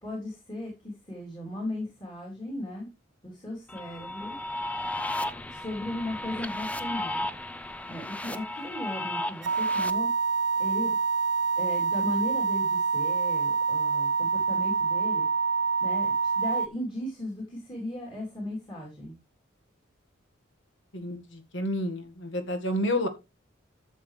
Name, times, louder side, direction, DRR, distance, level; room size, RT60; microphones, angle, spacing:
voice 1, 0.0-2.9 3.2-4.4 5.5-7.2 7.9-10.1 10.6-11.0 11.5-15.2 15.8-19.2, left 1 dB, 25° left, -2 dB, 3.4 m, -36 dB
sound 1, 3.7-9.9, left 1 dB, 5° left, 0.5 m, -34 dB
sound 2, 9.4-16.7, right 5 dB, 60° right, 0.6 m, -26 dB
voice 2, 20.9-23.1, left 1 dB, 65° left, 8 dB, 1.8 m, -30 dB
11.5 x 7.1 x 3.3 m, 0.25 s
head